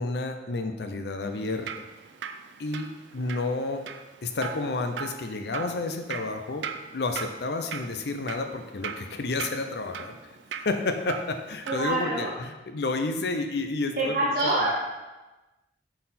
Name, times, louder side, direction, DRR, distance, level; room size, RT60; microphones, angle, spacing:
voice 1, 0.0-1.7 2.6-3.8 4.2-6.7 6.9-10.2 10.6-14.2, left 3 dB, 65° left, 6 dB, 0.5 m, -30 dB
Drip, 1.2-11.9, right 7 dB, 85° right, 0.4 m, -40 dB
voice 2, 11.7-12.3 14.0-14.7, right 2 dB, 50° right, -6 dB, 1.0 m, -25 dB
7.6 x 4.1 x 4.2 m, 1.1 s
head